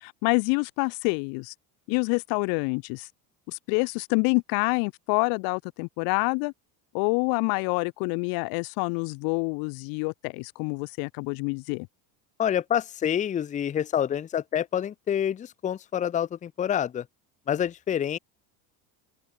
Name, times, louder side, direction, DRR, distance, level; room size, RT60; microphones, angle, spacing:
voice 1, 0.0-1.5 1.9-3.1 3.5-6.5 6.9-11.9, left 36 dB, 60° left, 1.0 m, -27 dB
voice 2, 12.4-17.0 17.5-18.2, left 9 dB, 20° left, 0.8 m, -27 dB
open air
cardioid pair, 165°, 40 cm